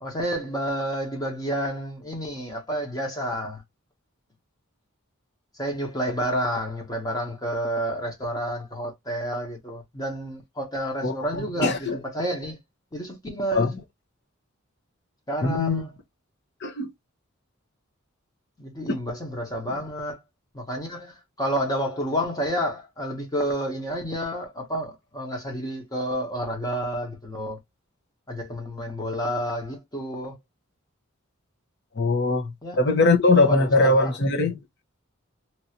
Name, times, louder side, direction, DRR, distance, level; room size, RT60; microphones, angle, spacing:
voice 1, 0.0-3.6 5.6-12.6 12.9-13.7 15.3-15.9 18.6-20.2 20.5-27.6 28.3-30.4 32.6-32.8 33.3-34.1, equal, 20° left, 1.1 m, -30 dB
voice 2, 11.0-12.0 13.5-13.7 15.4-15.8 16.6-16.9 18.9-19.0 32.0-32.5 32.8-34.6, left 2 dB, 55° left, 0.9 m, -21 dB
3.0 x 2.7 x 2.8 m
head